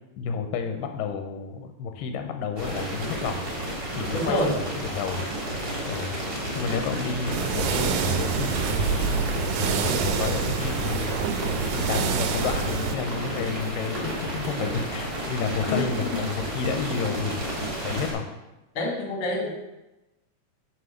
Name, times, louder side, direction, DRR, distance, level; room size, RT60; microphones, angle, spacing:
voice 1, 0.2-3.5 3.9-5.3 5.9-6.1 6.6-9.2 9.5-11.3 11.7-17.5 17.8-18.2, left 6 dB, 90° left, 6 dB, 2.4 m, -31 dB
sound 1, 2.6-18.1, right 1 dB, 30° right, 1.1 m, -31 dB
voice 2, 4.1-4.5 15.7-16.2 18.7-19.5, left 2 dB, 50° left, 1 dB, 1.9 m, -27 dB
sound 2, 7.3-12.9, right 6 dB, 80° right, 1.9 m, -27 dB
5.6 x 4.9 x 6.4 m, 0.99 s
omnidirectional pair, 3.9 m